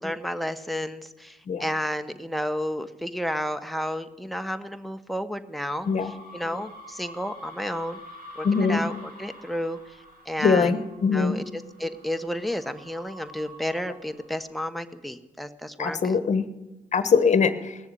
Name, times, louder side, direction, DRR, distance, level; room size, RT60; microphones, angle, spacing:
voice 1, 0.0-8.0 8.4-10.0 10.3-10.8 11.1-16.1, equal, ahead, 8 dB, 1.1 m, -32 dB
sound 1, 5.6-14.5, left 1 dB, 65° right, 5.0 m, -46 dB
voice 2, 8.4-8.8 10.4-11.4 15.8-16.4 16.9-17.7, left 5 dB, 50° left, 13 dB, 1.2 m, -22 dB
17.5 x 7.1 x 9.7 m, 1.1 s
supercardioid pair, 60°, 16 cm